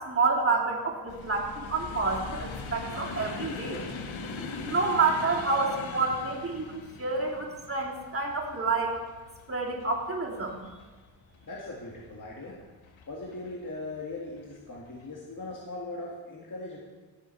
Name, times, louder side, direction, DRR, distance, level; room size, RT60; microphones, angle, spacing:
voice 1, 0.0-3.8 4.6-9.0 9.5-10.6, right 3 dB, 30° right, -1 dB, 2.5 m, -28 dB
sound 1, 1.1-12.2 12.8-13.5 14.4-14.6 14.9-15.0, left 4 dB, 80° left, 1.3 m, -41 dB
voice 2, 11.4-12.6 13.1-16.8, left 2 dB, 40° left, -4 dB, 2.0 m, -39 dB
15.0 x 7.3 x 4.6 m, 1.3 s
cardioid pair, 75°, 46 cm